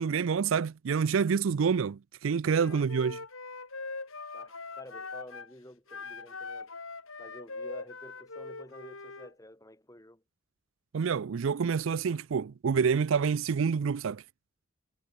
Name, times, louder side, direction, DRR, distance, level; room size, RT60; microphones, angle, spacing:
voice 1, 0.0-3.2 10.9-14.2, right 6 dB, 65° right, 0.4 m, -27 dB
Wind instrument woodwind instrument, 2.5-5.5 5.9-9.3, left 3 dB, 75° left, 4.5 m, -42 dB
voice 2, 4.3-6.7 7.2-10.2, left 1 dB, 15° left, 6.5 m, -50 dB
head